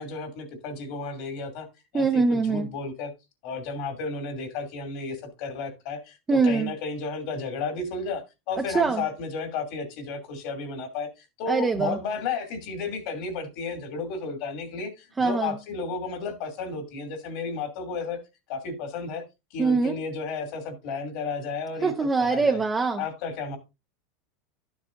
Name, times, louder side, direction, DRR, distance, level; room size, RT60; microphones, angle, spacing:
voice 1, 0.0-1.7 1.9-3.1 3.4-18.2 18.5-19.2 19.5-21.9 22.2-22.6 23.0-23.6, left 4 dB, 65° left, 2.6 m, -33 dB
voice 2, 1.9-2.7 6.3-6.7 8.6-9.0 11.5-12.0 15.2-15.6 19.6-20.0 21.8-23.0, right 4 dB, 15° right, 0.8 m, -23 dB
12.0 x 7.2 x 2.6 m
supercardioid pair, 120°, 0 cm